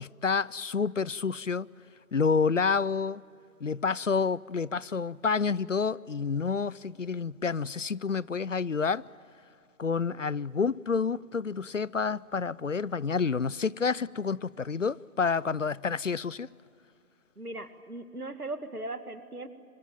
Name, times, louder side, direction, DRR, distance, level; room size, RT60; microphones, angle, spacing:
voice 1, 0.0-1.7 2.1-3.2 3.6-9.1 9.8-16.5, left 5 dB, 60° left, 0.5 m, -29 dB
voice 2, 17.4-19.5, right 2 dB, 85° right, 2.2 m, -38 dB
25.0 x 20.5 x 9.1 m
figure-of-eight pair, 165°, 44 cm